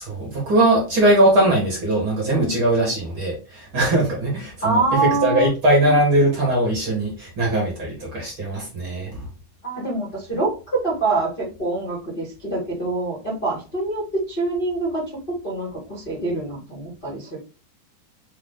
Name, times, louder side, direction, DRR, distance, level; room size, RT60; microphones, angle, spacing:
voice 1, 0.0-9.3, right 1 dB, 50° right, -2 dB, 1.8 m, -20 dB
voice 2, 4.6-5.5 9.6-17.4, right 3 dB, 50° left, -6 dB, 0.6 m, -25 dB
5.5 x 2.3 x 3.5 m, 0.34 s
omnidirectional pair, 3.7 m